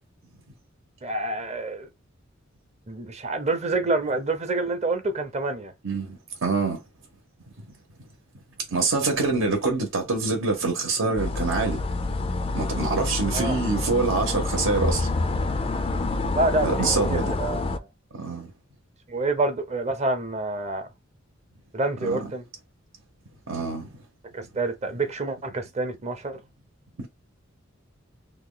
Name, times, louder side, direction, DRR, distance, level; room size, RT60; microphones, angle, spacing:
voice 1, 1.0-1.9 2.9-5.7 13.3-13.6 16.3-17.9 19.1-20.9 21.7-22.4 24.3-26.4, right 2 dB, 35° right, 0.7 m, -27 dB
voice 2, 5.8-6.8 8.7-11.8 12.5-15.1 16.6-17.3 18.1-18.5 22.0-22.2 23.5-23.9 27.0-27.1, right 3 dB, 80° right, 1.0 m, -25 dB
sound 1, 11.2-17.8, left 3 dB, 30° left, 0.4 m, -27 dB
2.9 x 2.3 x 3.8 m
head